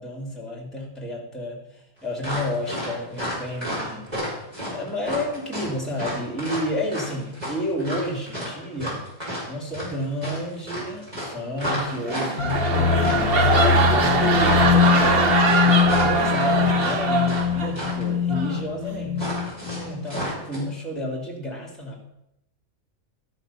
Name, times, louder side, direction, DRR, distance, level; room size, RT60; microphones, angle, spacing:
voice 1, 0.0-4.1 4.6-9.0 9.5-19.3 19.8-22.0, left 1 dB, ahead, -1 dB, 2.4 m, -31 dB
sound 1, 2.2-17.4 17.7-18.0 19.2-20.6, equal, 25° right, 4.6 m, -32 dB
sound 2, 12.0-17.9 18.3-18.6, right 3 dB, 45° right, 1.2 m, -22 dB
sound 3, 12.4-20.1, left 7 dB, 90° left, 1.2 m, -23 dB
12.5 x 6.0 x 5.6 m, 0.83 s
omnidirectional pair, 1.5 m